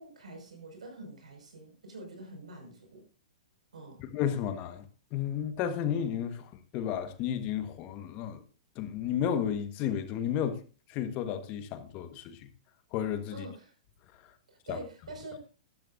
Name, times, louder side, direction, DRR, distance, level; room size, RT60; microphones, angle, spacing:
voice 1, 0.0-3.0 3.7-4.0 13.3-13.8 14.5-15.5, right 2 dB, 85° right, 5.5 m, -46 dB
voice 2, 4.0-8.4 8.7-10.6 10.9-12.5 12.9-13.4 14.7-14.8, left 9 dB, 40° left, 1.4 m, -32 dB
14.0 x 12.0 x 2.6 m
hypercardioid pair, 120°, 4 cm